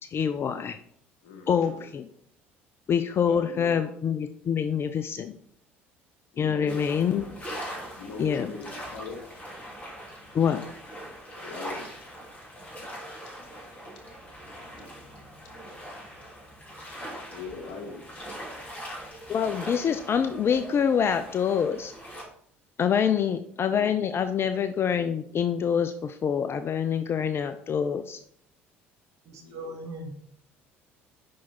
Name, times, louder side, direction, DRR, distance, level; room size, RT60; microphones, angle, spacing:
voice 1, 0.1-0.8 1.5-2.1 2.9-5.3 6.4-7.2 8.2-8.5 10.3-10.6 19.3-21.9 22.8-28.2, left 7 dB, 40° left, 10 dB, 0.4 m, -26 dB
voice 2, 1.2-1.8 3.2-3.8 6.3-7.4 7.9-9.2 11.4-11.9 17.3-18.0 23.6-23.9 27.7-28.0 29.4-29.8, left 4 dB, 65° left, 1 dB, 1.7 m, -41 dB
sound 1, 6.7-22.2, equal, 25° left, 2.9 m, -42 dB
voice 3, 29.2-30.1, right 1 dB, 55° right, 2 dB, 1.7 m, -39 dB
5.8 x 4.6 x 4.2 m, 0.67 s
hypercardioid pair, 60°, 7 cm